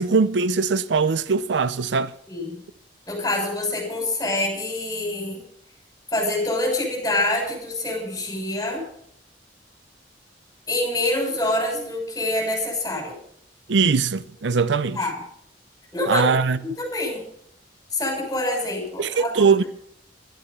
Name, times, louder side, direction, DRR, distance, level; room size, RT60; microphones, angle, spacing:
voice 1, 0.0-2.1 13.7-15.0 16.1-16.6 19.0-19.6, right 5 dB, 75° right, 0.6 m, -21 dB
voice 2, 2.3-2.6 3.1-5.4 6.1-8.8 10.7-13.1 14.9-15.2 15.9-16.3 16.6-17.2 17.9-19.7, left 1 dB, 20° left, 6.6 m, -26 dB
13.0 x 11.0 x 6.9 m
head